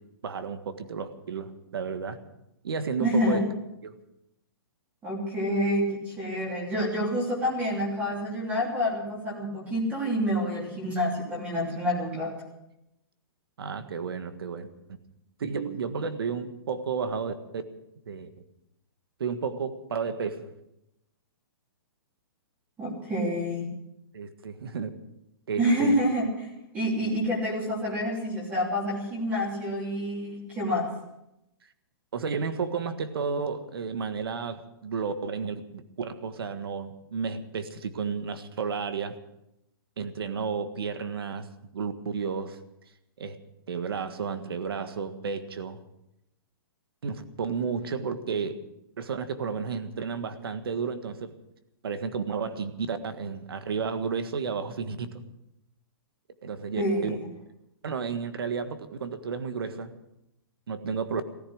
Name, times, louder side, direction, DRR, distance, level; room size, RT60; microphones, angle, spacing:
voice 1, 0.2-2.2 2.6-3.4 3.8-4.0 13.6-14.7 15.4-17.6 18.1-18.3 19.2-20.5 24.1-24.9 25.5-25.9 32.1-39.2 40.0-41.5 41.7-42.6 43.2-43.4 43.7-45.8 47.0-48.6 49.0-51.4 51.8-55.3 56.4-57.2 57.8-59.9 60.7-61.2, right 5 dB, 70° right, 10 dB, 1.6 m, -32 dB
voice 2, 3.0-3.5 5.0-12.3 22.8-23.7 25.6-30.9 56.8-57.2, equal, 10° right, -2 dB, 3.1 m, -28 dB
15.5 x 14.5 x 6.4 m, 0.87 s
hypercardioid pair, 175°, 13 cm